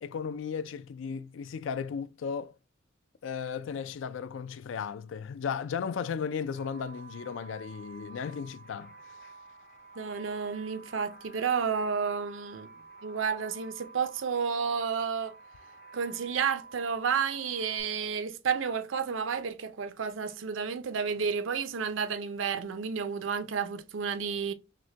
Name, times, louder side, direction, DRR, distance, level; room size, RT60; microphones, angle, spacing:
voice 1, 0.0-2.5 3.2-8.9, left 6 dB, 75° left, 0.4 m, -35 dB
sound 1, 6.5-17.8, right 4 dB, 60° left, 1.0 m, -51 dB
voice 2, 10.0-12.7 13.0-15.4 15.9-24.5, right 6 dB, 85° right, 0.5 m, -31 dB
6.0 x 2.1 x 2.7 m
head